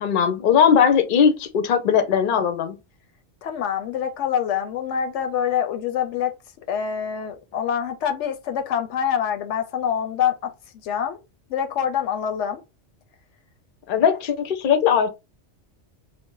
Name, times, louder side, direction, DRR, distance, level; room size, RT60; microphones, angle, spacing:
voice 1, 0.0-2.8 13.9-15.1, left 7 dB, 55° left, 0.7 m, -19 dB
voice 2, 3.4-6.3 6.7-10.5 10.8-11.2 11.5-12.6, left 8 dB, 85° left, 0.9 m, -25 dB
2.6 x 2.0 x 3.7 m
omnidirectional pair, 1.2 m